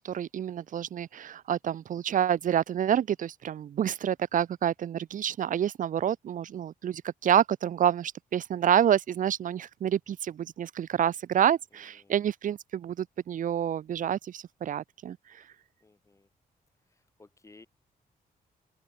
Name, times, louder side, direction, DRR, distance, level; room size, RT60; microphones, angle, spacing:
voice 1, 0.0-15.2, right 10 dB, 55° right, 0.7 m, -28 dB
voice 2, 11.7-12.3 15.8-16.3 16.9-17.7, left 3 dB, 20° left, 3.5 m, -58 dB
open air
wide cardioid pair, 150°, 16 cm